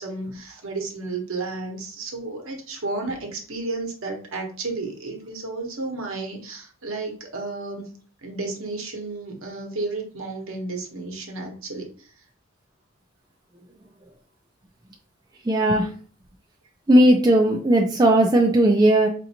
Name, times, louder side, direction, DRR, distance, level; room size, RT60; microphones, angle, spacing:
voice 1, 0.0-7.9 8.2-12.1, right 3 dB, 65° right, 1 dB, 1.0 m, -32 dB
voice 2, 15.5-15.9 16.9-19.1, right 1 dB, 20° right, 1 dB, 0.4 m, -17 dB
5.4 x 2.6 x 2.8 m, 0.43 s
head